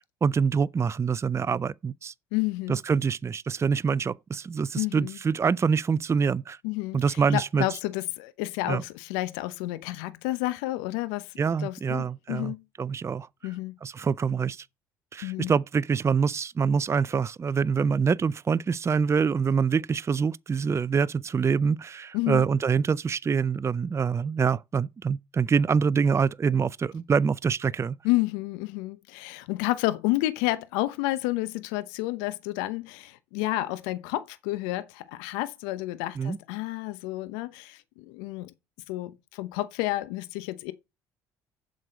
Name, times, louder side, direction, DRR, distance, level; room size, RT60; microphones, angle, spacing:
voice 1, 0.2-2.1 2.7-6.6 6.9-7.7 8.7-8.8 11.4-12.5 12.8-13.3 13.8-14.7 15.1-27.9 36.2-36.4, right 6 dB, 25° right, 0.4 m, -25 dB
voice 2, 2.3-2.8 4.8-5.2 6.6-11.3 11.6-12.6 13.4-13.8 15.2-15.5 22.1-22.4 28.0-38.5 38.9-40.7, left 18 dB, 80° left, 0.8 m, -30 dB
7.6 x 6.3 x 5.2 m
hypercardioid pair, 65°, 10 cm